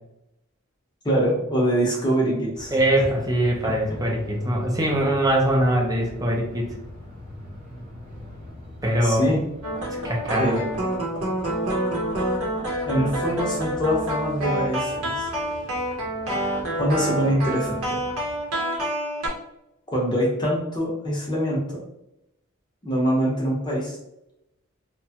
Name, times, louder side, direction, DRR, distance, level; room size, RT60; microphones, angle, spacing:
voice 1, 1.0-2.7 9.0-9.4 10.4-10.6 12.8-15.3 16.8-18.0 19.9-21.8 22.8-24.0, equal, 20° left, -4 dB, 0.7 m, -24 dB
sound 1, 2.5-18.4, left 1 dB, 35° right, 1.0 m, -40 dB
voice 2, 2.7-6.7 8.8-9.3 10.0-10.6, right 1 dB, 15° right, 0 dB, 0.5 m, -22 dB
sound 2, 9.6-19.3, equal, 85° right, 0.8 m, -27 dB
2.9 x 2.2 x 2.8 m, 0.84 s
head